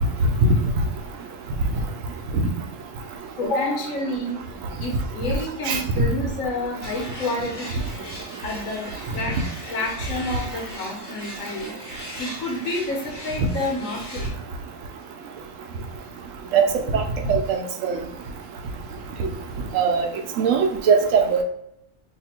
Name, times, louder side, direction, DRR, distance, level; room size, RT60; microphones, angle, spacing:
voice 1, 3.4-4.4 4.8-8.2 8.4-9.3 9.7-11.7 12.2-14.3, left 2 dB, 80° left, -1 dB, 1.3 m, -29 dB
sound 1, 6.8-14.3, equal, 20° left, 1.1 m, -39 dB
voice 2, 17.3-18.0 19.2-19.3 19.7-20.1 20.4-21.4, right 5 dB, 80° right, 4 dB, 1.0 m, -20 dB
2.8 x 2.6 x 4.2 m, 0.75 s
omnidirectional pair, 1.3 m